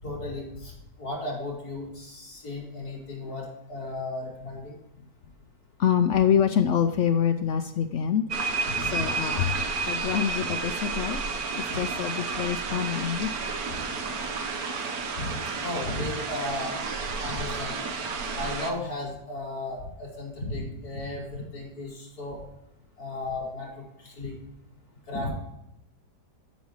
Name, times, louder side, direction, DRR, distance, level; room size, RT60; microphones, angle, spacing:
voice 1, 0.0-4.8 8.7-9.1 11.7-11.8 15.2-16.8 17.2-17.7 18.4-22.4 23.0-24.3 25.1-25.3, left 2 dB, 60° left, -6 dB, 4.2 m, -35 dB
voice 2, 5.8-8.2 8.8-9.5 9.9-11.2 11.5-13.3, left 8 dB, 80° left, 7 dB, 0.6 m, -25 dB
sound 1, 8.3-18.7, right 4 dB, 60° right, 1.4 m, -31 dB
12.0 x 5.3 x 4.8 m, 0.85 s
omnidirectional pair, 1.9 m